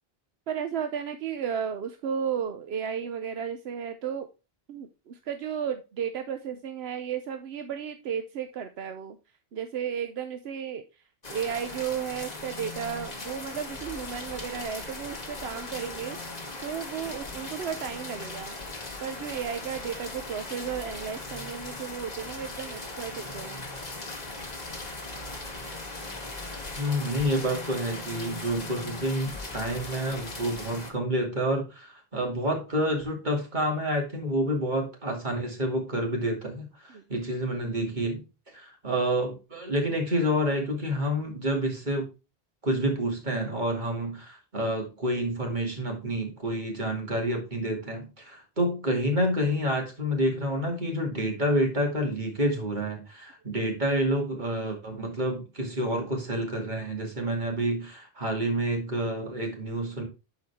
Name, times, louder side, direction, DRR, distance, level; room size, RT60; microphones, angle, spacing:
voice 1, 0.5-4.3 4.7-9.2 9.5-10.8 11.3-18.5 19.0-23.6 36.9-37.0, right 8 dB, 80° right, 8 dB, 1.0 m, -34 dB
sound 1, 11.2-30.9, left 2 dB, 40° left, 1.7 m, -38 dB
voice 2, 26.8-38.2 38.5-42.1 42.6-60.0, equal, 50° right, 1 dB, 2.6 m, -28 dB
11.5 x 4.7 x 3.5 m, 0.30 s
omnidirectional pair, 1.0 m